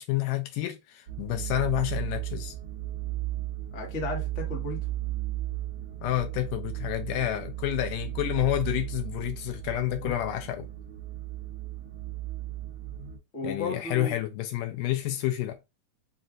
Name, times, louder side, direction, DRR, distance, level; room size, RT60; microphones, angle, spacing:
voice 1, 0.0-2.6 6.0-10.7 13.4-15.6, left 14 dB, 80° left, 2.0 m, -29 dB
sound 1, 1.1-13.2, right 15 dB, 60° right, 1.5 m, -35 dB
voice 2, 3.7-4.8 9.9-10.1 13.3-14.2, left 3 dB, 40° left, 1.0 m, -34 dB
5.6 x 2.5 x 2.3 m
omnidirectional pair, 3.9 m